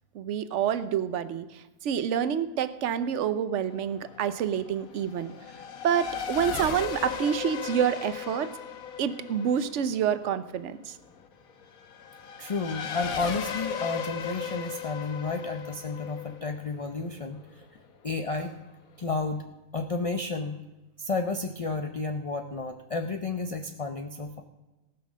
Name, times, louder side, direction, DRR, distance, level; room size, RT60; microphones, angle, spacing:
voice 1, 0.1-5.3 5.8-8.5 9.0-11.0, right 8 dB, 60° right, 13 dB, 1.0 m, -28 dB
Race car auto racing / Accelerating revving vroom, 3.7-17.8, left 7 dB, 70° left, 1.5 m, -37 dB
voice 2, 12.4-17.6 18.0-18.5 19.0-19.4 19.7-20.6 21.0-24.4, left 3 dB, 40° left, 6 dB, 0.5 m, -32 dB
18.5 x 6.2 x 6.2 m, 1.1 s
omnidirectional pair, 1.5 m